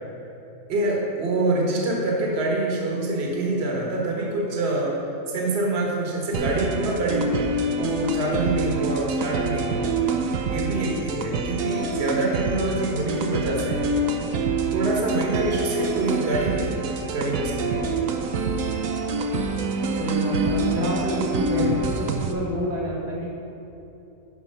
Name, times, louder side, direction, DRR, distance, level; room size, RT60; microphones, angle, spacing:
voice 1, 0.7-4.9 5.3-9.8 10.5-13.9 14.7-17.9, right 2 dB, 45° right, -2 dB, 1.5 m, -26 dB
sound 1, 6.3-22.3, right 3 dB, 65° right, 1.0 m, -26 dB
voice 2, 20.0-23.3, equal, 85° right, -5 dB, 2.2 m, -28 dB
10.5 x 4.7 x 5.5 m, 2.9 s
omnidirectional pair, 1.7 m